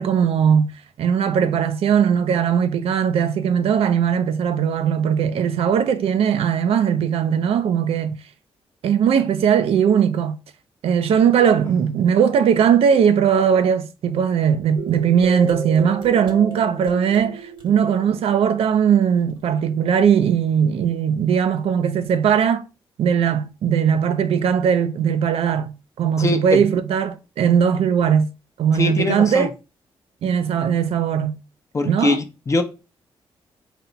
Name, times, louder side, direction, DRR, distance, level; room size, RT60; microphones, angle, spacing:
voice 1, 0.0-8.2 8.8-10.4 10.8-22.6 23.0-28.3 28.6-29.5 30.2-31.4 31.8-32.2, right 7 dB, 75° right, 0.5 m, -19 dB
sound 1, 14.8-19.2, right 3 dB, 55° right, 0.9 m, -33 dB
voice 2, 26.2-26.6 28.7-29.5 31.7-32.6, left 2 dB, 30° left, 0.7 m, -22 dB
4.1 x 2.2 x 3.9 m
cardioid pair, 95°, 10 cm